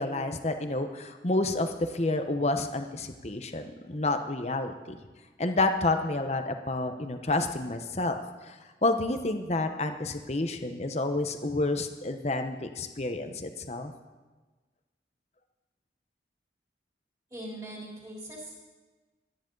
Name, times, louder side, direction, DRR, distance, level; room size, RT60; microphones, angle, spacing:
voice 1, 0.0-5.0 5.4-8.6 8.8-13.9, left 2 dB, 35° left, 7 dB, 1.0 m, -29 dB
voice 2, 17.3-18.6, right 1 dB, 20° right, -4 dB, 3.7 m, -41 dB
24.5 x 10.0 x 4.0 m, 1.3 s
head